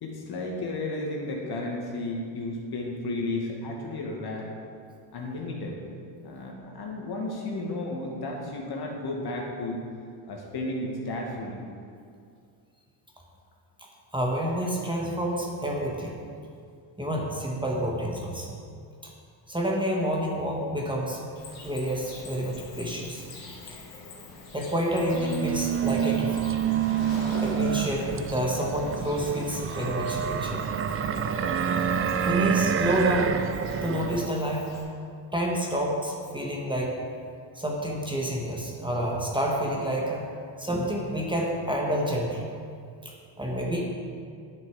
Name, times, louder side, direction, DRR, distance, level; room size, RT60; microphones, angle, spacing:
voice 1, 0.0-4.5 5.1-5.7 6.2-9.8 10.3-11.6, left 2 dB, 50° left, -1 dB, 2.1 m, -33 dB
voice 2, 14.1-16.2 17.0-18.6 19.0-19.1 19.5-21.2 21.6-23.2 23.7-23.8 24.5-26.4 27.4-30.6 31.8-31.9 32.2-33.3 33.7-34.8 35.3-36.9 37.5-40.2 40.6-42.5 43.0-43.8, equal, 10° right, -2 dB, 1.5 m, -29 dB
Cricket, 21.4-34.8, left 2 dB, 70° left, 2.5 m, -44 dB
sound 1, 24.9-34.3, right 8 dB, 30° right, 0.4 m, -28 dB
10.0 x 6.6 x 4.9 m, 2.3 s
supercardioid pair, 90°, 49 cm